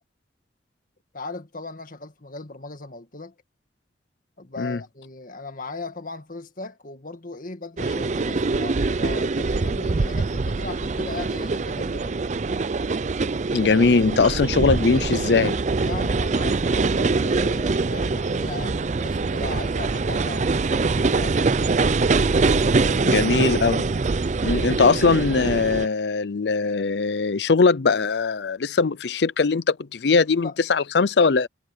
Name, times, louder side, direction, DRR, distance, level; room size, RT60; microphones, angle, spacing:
voice 1, 1.1-3.4 4.4-12.2 15.8-22.1 22.5-23.1 30.4-30.6, left 3 dB, 50° left, 1.9 m, -37 dB
sound 1, 7.8-25.9, right 3 dB, 40° right, 0.5 m, -23 dB
voice 2, 13.5-15.5 23.1-23.9 24.4-31.5, left 4 dB, 70° left, 0.6 m, -20 dB
head